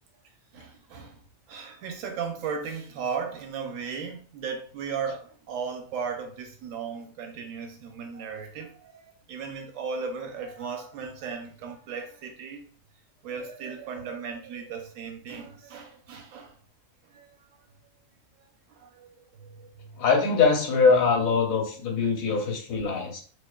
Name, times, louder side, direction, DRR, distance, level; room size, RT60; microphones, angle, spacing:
voice 1, 0.5-12.6 13.2-16.6 17.1-17.4 18.7-20.0, right 6 dB, 75° right, 0.9 m, -36 dB
voice 2, 20.0-23.2, left 5 dB, 80° left, 1.1 m, -23 dB
2.7 x 2.1 x 2.2 m
omnidirectional pair, 1.5 m